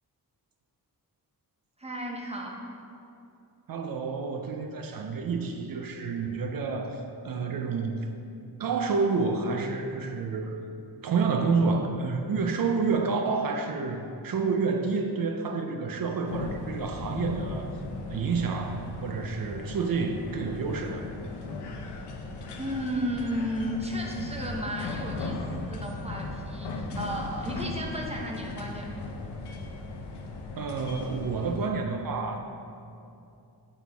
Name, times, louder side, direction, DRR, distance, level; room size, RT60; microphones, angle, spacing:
voice 1, 1.8-2.6 22.6-29.1, equal, 15° right, -1 dB, 0.8 m, -33 dB
voice 2, 3.7-8.1 8.6-10.7 11.0-17.7 18.1-21.1 30.6-32.4, right 4 dB, 60° right, 4 dB, 0.6 m, -29 dB
sound 1, 16.2-31.7, left 2 dB, 80° left, 0.8 m, -37 dB
9.1 x 4.2 x 3.5 m, 2.7 s
cardioid pair, 90°, 39 cm